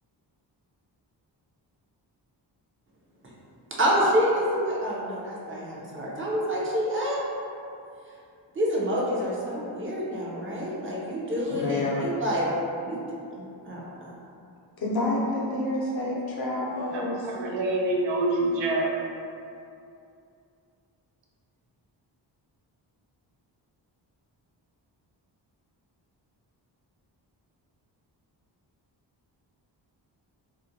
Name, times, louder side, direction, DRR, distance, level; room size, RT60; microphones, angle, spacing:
voice 1, 3.8-7.2 8.5-12.5 12.8-13.0 13.3-14.1, equal, 30° right, -5 dB, 0.6 m, -27 dB
voice 2, 11.5-12.1 14.8-17.3, left 2 dB, 55° left, -4 dB, 0.7 m, -28 dB
voice 3, 16.9-18.9, right 2 dB, 75° right, -2 dB, 0.5 m, -26 dB
2.5 x 2.1 x 2.6 m, 2.5 s
cardioid pair, 80°, 44 cm